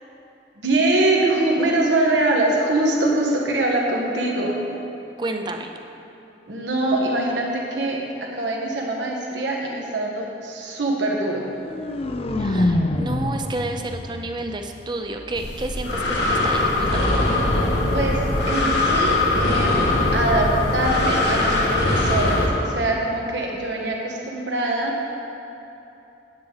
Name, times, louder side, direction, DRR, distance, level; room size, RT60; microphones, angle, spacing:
voice 1, 0.6-4.6 6.5-11.5 17.9-18.2 18.5-19.8 20.1-24.9, right 2 dB, 85° right, -2 dB, 1.5 m, -23 dB
voice 2, 5.2-5.7 12.4-17.1, right 2 dB, 25° right, 5 dB, 0.5 m, -30 dB
sound 1, 11.4-15.4, left 1 dB, 35° left, 0.4 m, -26 dB
Breathing, 15.3-22.5, left 2 dB, 70° left, 1.5 m, -21 dB
9.7 x 8.3 x 4.0 m, 2.9 s
head